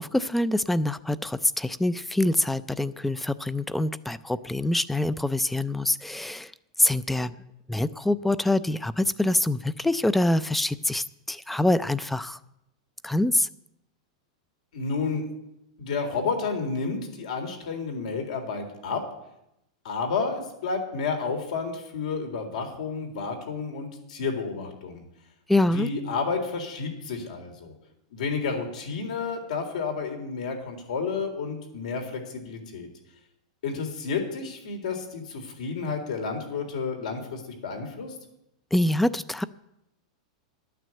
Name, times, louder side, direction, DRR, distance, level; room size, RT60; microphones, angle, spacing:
voice 1, 0.0-6.5 6.8-7.4 7.7-12.4 13.0-13.5 25.5-25.9 38.7-39.4, left 1 dB, 5° left, 16 dB, 0.4 m, -25 dB
voice 2, 14.7-15.2 15.8-19.0 19.8-25.0 25.7-27.7 28.1-32.9 33.6-38.1, left 4 dB, 75° left, 4 dB, 3.7 m, -31 dB
12.0 x 9.2 x 7.7 m, 0.84 s
supercardioid pair, 155°, 4 cm